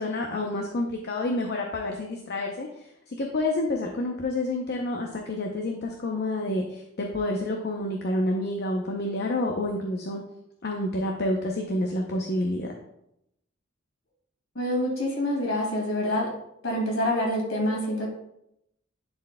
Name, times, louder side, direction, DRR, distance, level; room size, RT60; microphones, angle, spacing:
voice 1, 0.0-2.7 3.1-10.2 10.6-12.7, left 1 dB, 55° left, 1 dB, 0.7 m, -28 dB
voice 2, 14.6-16.3 16.6-18.1, left 1 dB, 70° left, -1 dB, 2.2 m, -26 dB
10.5 x 4.5 x 2.2 m, 0.80 s
head